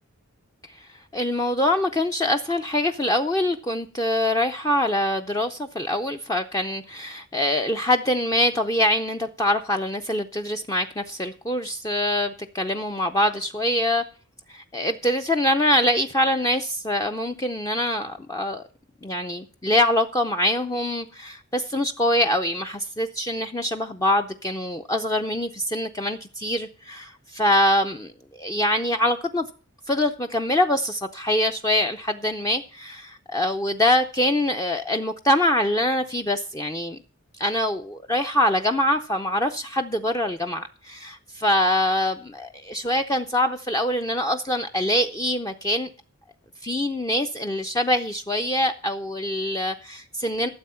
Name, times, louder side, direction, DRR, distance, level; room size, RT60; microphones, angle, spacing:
voice 1, 1.1-14.0 14.5-18.6 19.0-29.5 29.9-37.0 37.4-45.9 46.6-50.5, left 1 dB, 15° left, 0.4 m, -24 dB
13.0 x 7.6 x 5.5 m
head